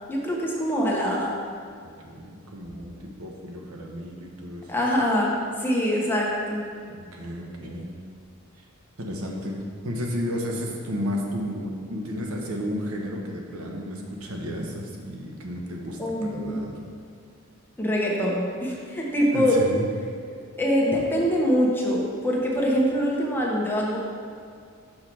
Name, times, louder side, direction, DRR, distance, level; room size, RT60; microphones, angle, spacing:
voice 1, 0.1-1.3 4.7-6.6 16.0-16.6 17.8-19.6 20.6-24.0, equal, 10° left, -4 dB, 1.1 m, -24 dB
voice 2, 2.0-4.7 6.9-8.0 9.0-16.7 19.3-19.9, equal, 85° right, 0 dB, 1.0 m, -32 dB
6.5 x 5.7 x 4.6 m, 2.3 s
head